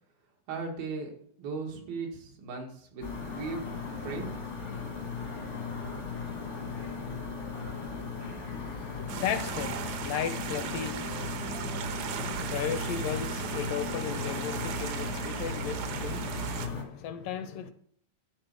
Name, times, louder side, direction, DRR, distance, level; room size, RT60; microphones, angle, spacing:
voice 1, 0.5-1.1 1.4-3.6 4.0-4.3, right 4 dB, 85° right, 3.8 m, -37 dB
sound 1, 3.0-16.8, left 5 dB, 50° left, 0.8 m, -37 dB
voice 2, 8.5-17.7, left 8 dB, 80° left, 2.2 m, -36 dB
sound 2, 9.1-16.7, right 7 dB, 70° right, 2.1 m, -36 dB
12.0 x 4.3 x 6.7 m
omnidirectional pair, 4.1 m